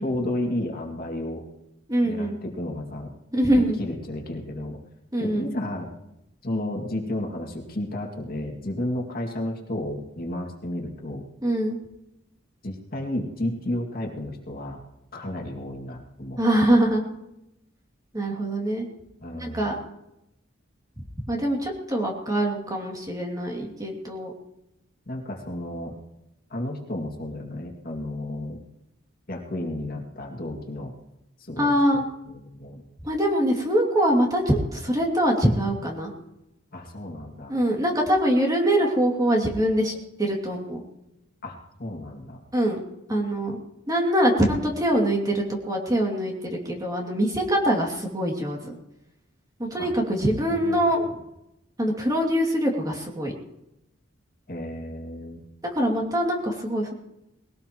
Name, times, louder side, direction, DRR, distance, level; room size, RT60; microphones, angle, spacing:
voice 1, 0.0-1.4 2.0-3.1 3.5-4.8 5.2-5.9 6.4-11.2 12.6-14.8 15.1-16.4 19.2-19.7 25.1-25.9 26.5-28.6 29.3-30.9 31.4-31.8 32.3-32.8 36.7-37.6 41.4-42.4 49.8-49.9 50.5-50.8 54.5-55.4, left 1 dB, 45° left, 0 dB, 2.3 m, -32 dB
voice 2, 1.9-2.4 3.3-3.8 5.1-5.5 11.4-11.8 16.4-17.0 18.1-18.8 19.3-19.8 21.3-24.3 31.6-32.0 33.0-36.1 37.5-40.8 42.5-42.8 43.1-43.6 43.9-48.6 49.6-51.1 51.8-53.3 55.7-56.9, right 1 dB, 15° right, 0 dB, 2.6 m, -23 dB
21.5 x 17.5 x 3.1 m, 0.87 s
head